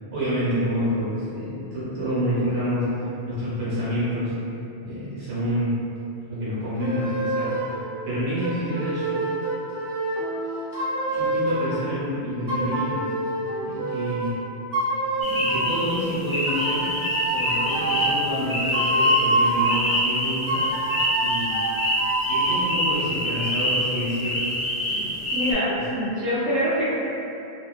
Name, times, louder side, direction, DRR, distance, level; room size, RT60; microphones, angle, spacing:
voice 1, 0.1-4.3 4.8-5.8 6.3-7.6 8.0-9.3 11.1-13.1 13.6-14.4 15.1-17.0 17.3-20.6 21.2-21.6 22.3-24.5 24.8-25.2, equal, 70° right, -11 dB, 1.2 m, -28 dB
sound 1, 6.8-7.8 8.4-11.8 12.5-14.3 14.7-15.8 16.5-19.8 20.5-22.7, right 1 dB, 40° right, 0.4 m, -26 dB
sound 2, 15.2-25.5, equal, 30° left, 0.6 m, -26 dB
voice 2, 25.3-26.8, equal, 90° right, -12 dB, 0.9 m, -24 dB
2.6 x 2.3 x 2.3 m, 2.8 s
omnidirectional pair, 1.1 m